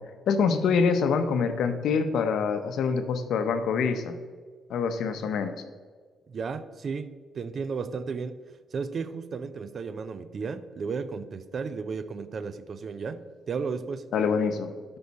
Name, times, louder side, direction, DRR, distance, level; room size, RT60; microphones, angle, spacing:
voice 1, 0.3-4.2 4.7-5.6 14.1-14.7, left 5 dB, 75° left, 9 dB, 0.8 m, -25 dB
voice 2, 6.3-8.4 8.7-14.1, right 5 dB, 45° right, 12 dB, 0.5 m, -34 dB
12.5 x 5.4 x 4.1 m, 1.5 s
cardioid pair, 135°, 0 cm